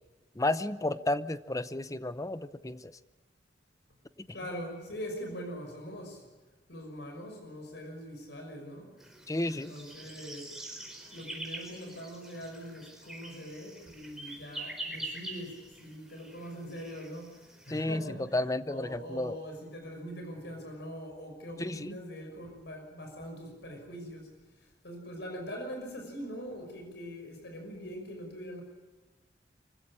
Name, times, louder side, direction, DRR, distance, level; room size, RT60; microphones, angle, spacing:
voice 1, 0.4-2.9 4.2-4.3 9.3-9.7 17.7-19.4 21.6-22.0, left 2 dB, 20° left, 14 dB, 0.7 m, -32 dB
voice 2, 4.3-6.3 6.7-8.9 9.4-10.5 11.1-24.3 24.6-28.6, equal, 70° left, 3 dB, 6.0 m, -42 dB
sound 1, 9.0-17.8, right 1 dB, 5° right, 4.8 m, -45 dB
25.0 x 16.0 x 9.9 m, 1.2 s
head